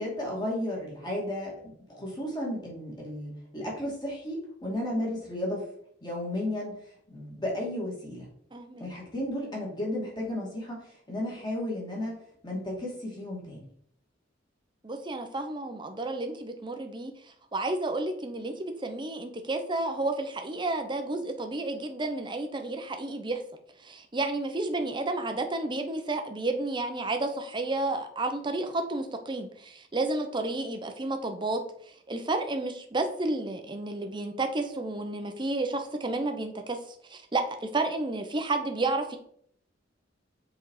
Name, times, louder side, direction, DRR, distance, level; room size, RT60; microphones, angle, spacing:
voice 1, 0.0-5.7 6.0-6.7 7.1-8.3 8.8-13.7, left 1 dB, 25° left, -3 dB, 2.6 m, -34 dB
voice 2, 8.5-8.9 14.8-17.1 17.5-23.4 23.8-31.6 31.9-36.8 37.1-39.2, right 2 dB, 25° right, 6 dB, 0.8 m, -31 dB
7.0 x 4.1 x 4.8 m, 0.66 s
head